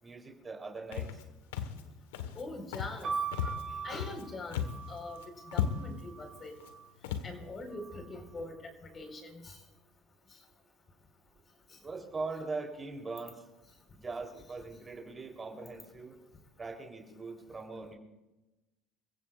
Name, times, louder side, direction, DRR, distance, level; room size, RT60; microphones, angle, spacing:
voice 1, 0.0-1.2 7.1-7.2 11.7-13.5 13.9-16.2 16.6-17.9, right 3 dB, 25° right, 2 dB, 3.6 m, -41 dB
Walk footsteps, 0.9-1.2 1.5-1.8 2.1-2.4 2.7-3.0 3.3-4.2 4.5-4.9 5.2-5.3 5.5-6.0 6.6-6.7 7.0-7.3, left 9 dB, 85° left, 1.4 m, -35 dB
voice 2, 2.3-3.1 3.4-3.5 3.8-5.2 5.5-6.5 7.2-8.6 8.8-9.6, left 2 dB, 30° left, 4 dB, 4.6 m, -43 dB
sound 1, 3.0-6.9 7.7-8.4, right 6 dB, 40° right, 5.1 m, -41 dB
28.0 x 15.5 x 2.5 m, 1.1 s
hypercardioid pair, 80°, 0 cm